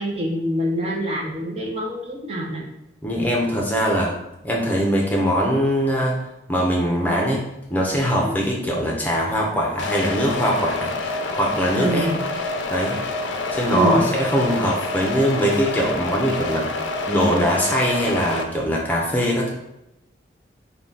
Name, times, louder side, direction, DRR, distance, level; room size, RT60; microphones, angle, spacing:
voice 1, 0.0-2.7 8.2-8.3 11.7-12.2 13.7-14.1, equal, 35° right, -2 dB, 0.7 m, -25 dB
voice 2, 3.0-4.1 4.4-6.2 6.5-7.4 7.7-10.9 11.2-12.1 12.7-13.0 13.5-19.5, equal, 10° left, -2 dB, 0.7 m, -22 dB
sound 1, 9.8-18.4, left 2 dB, 85° left, 0.4 m, -27 dB
3.8 x 2.3 x 3.8 m, 0.87 s
head